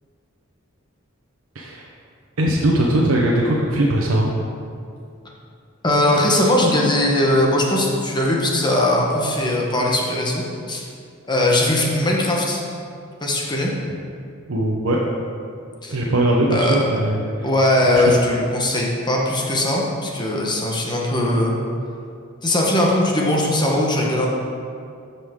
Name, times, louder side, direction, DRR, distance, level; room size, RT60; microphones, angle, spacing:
voice 1, 2.4-4.3 14.5-15.0 15.9-17.2 18.1-18.2, right 1 dB, 85° right, -2 dB, 0.8 m, -19 dB
voice 2, 5.8-10.9 11.3-12.6 13.2-13.7 15.8-16.0 16.5-16.9 17.4-21.6 22.4-24.3, left 1 dB, 20° left, -2 dB, 1.1 m, -20 dB
13.0 x 5.5 x 3.6 m, 2.4 s
head